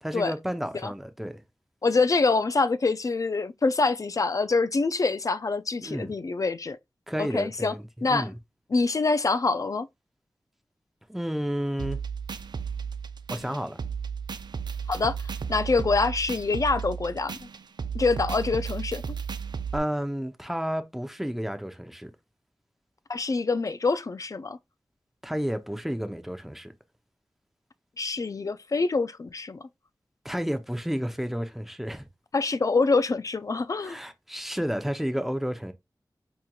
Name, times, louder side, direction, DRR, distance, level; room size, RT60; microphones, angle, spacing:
voice 1, 0.0-1.4 5.8-6.1 7.1-8.4 11.1-12.0 13.3-13.8 19.7-22.1 25.2-26.7 30.2-32.1 33.8-35.7, equal, 5° right, 0.6 m, -31 dB
voice 2, 1.8-6.8 7.2-7.7 8.0-8.3 8.7-9.9 14.9-15.2 15.5-17.3 17.9-19.0 23.1-24.6 28.0-29.6 32.3-34.0, left 3 dB, 45° left, 0.3 m, -25 dB
sound 1, 11.8-19.8, right 6 dB, 70° right, 0.4 m, -34 dB
4.9 x 2.9 x 2.3 m
wide cardioid pair, 75°, 8 cm